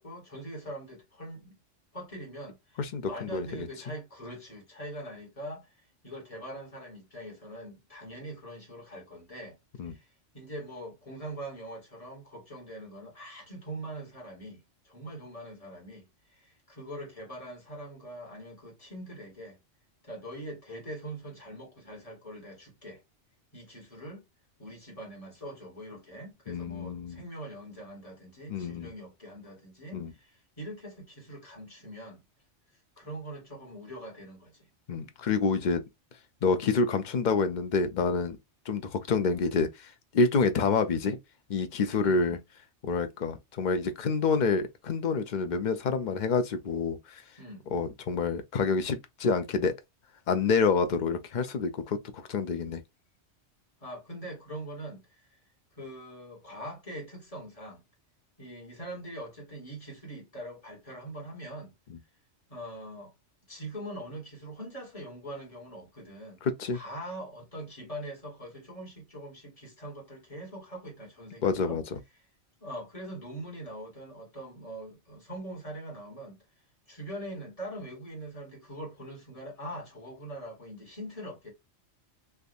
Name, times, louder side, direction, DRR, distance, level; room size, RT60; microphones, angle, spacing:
voice 1, 0.0-1.5 1.9-9.6 9.8-19.6 20.0-23.0 23.5-24.3 24.6-32.2 33.0-34.7 42.0-42.4 47.4-47.7 53.8-55.4 55.8-57.8 58.4-61.8 62.5-63.1 63.4-66.4 66.7-71.8 72.6-76.4 76.9-81.5, right 1 dB, 30° left, 1.6 m, -43 dB
voice 2, 2.8-3.7 9.8-9.9 26.5-27.2 28.5-28.9 29.9-30.1 34.9-35.8 36.4-38.4 38.7-41.2 41.5-42.4 42.8-47.2 47.7-49.7 50.3-52.8 61.9-62.0 66.4-66.8 71.4-72.0, left 4 dB, 50° left, 0.6 m, -28 dB
3.4 x 2.6 x 2.5 m
omnidirectional pair, 1.2 m